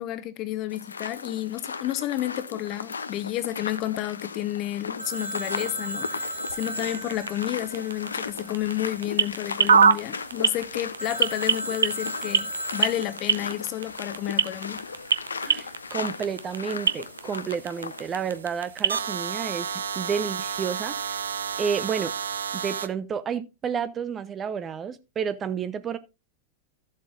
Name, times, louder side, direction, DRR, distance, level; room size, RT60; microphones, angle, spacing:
voice 1, 0.0-14.8, left 14 dB, 40° left, 0.9 m, -31 dB
sound 1, 0.7-18.4, left 5 dB, 75° left, 0.6 m, -37 dB
Telephone, 5.0-8.6 11.0-13.5, right 1 dB, 90° right, 1.6 m, -35 dB
sound 2, 5.5-22.9, right 6 dB, 70° right, 0.6 m, -28 dB
voice 2, 15.4-21.2 21.6-22.1 22.6-26.0, right 7 dB, 25° right, 0.6 m, -31 dB
14.0 x 7.4 x 2.4 m
figure-of-eight pair, 90°, 0 cm